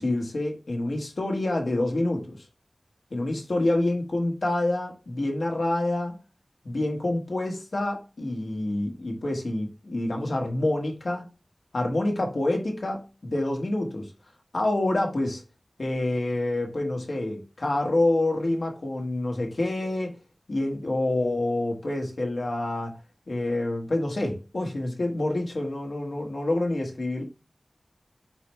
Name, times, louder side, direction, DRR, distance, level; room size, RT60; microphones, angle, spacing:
voice 1, 0.0-2.4 3.1-6.2 6.6-11.3 11.7-14.1 14.5-15.4 15.8-20.2 20.5-22.9 23.3-27.2, left 2 dB, 75° left, 1.1 m, -27 dB
4.4 x 4.1 x 3.0 m
wide cardioid pair, 75°, 0 cm